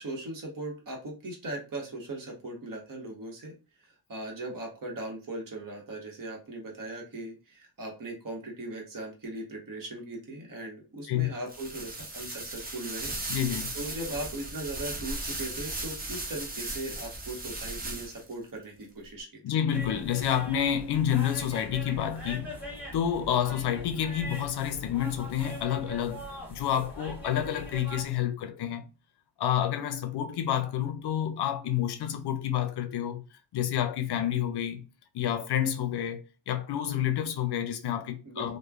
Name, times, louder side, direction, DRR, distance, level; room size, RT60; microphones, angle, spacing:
voice 1, 0.0-3.5 4.1-13.1 13.7-19.4 38.2-38.6, right 2 dB, 55° right, 1.1 m, -39 dB
sound 1, 11.5-18.3, right 2 dB, 25° right, 0.5 m, -37 dB
voice 2, 13.3-13.8 19.4-22.6 22.9-28.8 29.4-33.2 33.5-34.9 35.1-38.6, left 10 dB, 85° left, 0.5 m, -29 dB
sound 2, 19.7-28.1, equal, 5° right, 1.0 m, -42 dB
3.1 x 2.1 x 2.3 m
wide cardioid pair, 125°, 38 cm